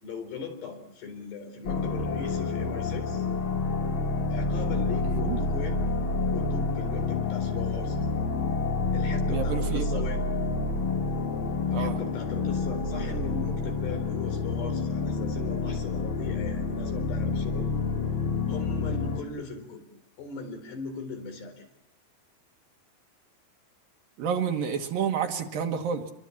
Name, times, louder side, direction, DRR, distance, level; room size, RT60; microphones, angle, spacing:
voice 1, 0.0-3.3 4.3-5.8 6.3-8.2 8.9-10.3 11.7-17.7 18.5-19.8 20.2-21.7, left 4 dB, 80° left, 4 dB, 6.4 m, -39 dB
sound 1, 1.6-19.2, left 3 dB, 45° left, 1.8 m, -28 dB
voice 2, 9.3-10.0 11.7-12.0 24.2-26.1, right 7 dB, 65° right, 5 dB, 3.0 m, -29 dB
29.0 x 23.0 x 7.3 m, 0.89 s
omnidirectional pair, 4.7 m